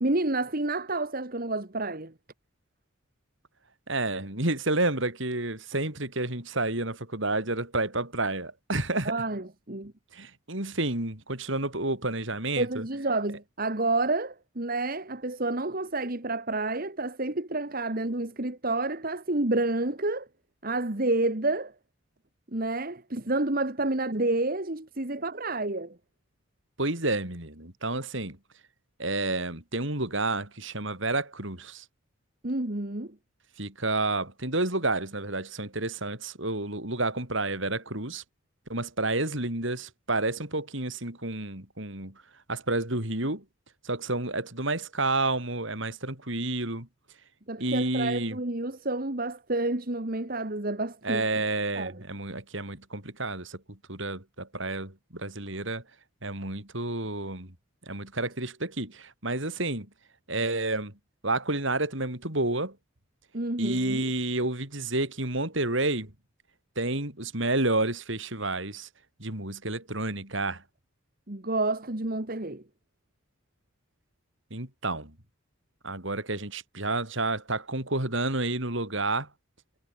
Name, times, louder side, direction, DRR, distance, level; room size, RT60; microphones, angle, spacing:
voice 1, 0.0-2.1 9.1-9.9 12.6-20.3 20.6-21.7 22.5-26.0 32.4-33.2 47.5-51.4 51.8-52.0 63.3-64.0 71.3-72.6, right 2 dB, 45° right, 1.7 m, -29 dB
voice 2, 3.9-9.2 10.1-12.8 26.8-28.4 29.0-31.8 33.6-38.2 38.7-42.1 42.5-43.4 43.8-46.9 47.6-48.4 51.0-55.8 56.2-57.5 57.9-59.9 60.3-60.9 61.2-62.8 63.6-66.1 66.7-68.9 69.2-70.6 74.5-75.1 75.8-79.3, right 2 dB, 60° right, 4.9 m, -30 dB
head